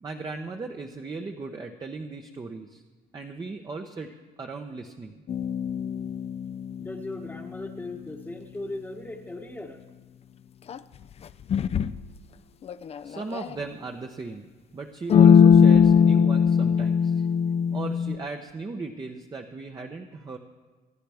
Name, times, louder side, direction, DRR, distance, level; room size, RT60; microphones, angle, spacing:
voice 1, 0.0-2.8 3.1-4.1 4.4-5.2 13.0-17.2 17.7-20.4, right 3 dB, 25° right, 3 dB, 0.9 m, -37 dB
sound 1, 5.3-7.6 10.7-10.8 11.5-12.0 12.7-13.5 15.1-18.2, left 7 dB, 35° left, 0.5 m, -20 dB
voice 2, 6.8-9.8, left 2 dB, 10° left, -1 dB, 1.1 m, -38 dB
25.5 x 10.0 x 3.5 m, 1.3 s
cardioid pair, 110°, 17 cm